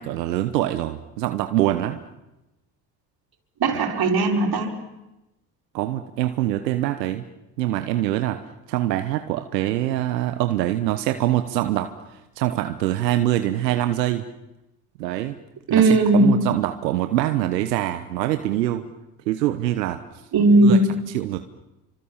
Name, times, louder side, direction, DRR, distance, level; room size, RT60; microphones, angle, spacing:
voice 1, 0.0-2.0 5.7-7.3 7.6-8.4 8.7-14.2 15.0-15.4 15.7-18.9 19.3-20.0 20.6-20.8 21.1-21.4, right 14 dB, 90° right, 8 dB, 1.2 m, -24 dB
voice 2, 3.6-4.8 15.7-16.5 20.3-21.2, right 2 dB, 50° right, 3 dB, 5.4 m, -18 dB
29.5 x 25.5 x 7.3 m, 0.96 s
hypercardioid pair, 65°, 48 cm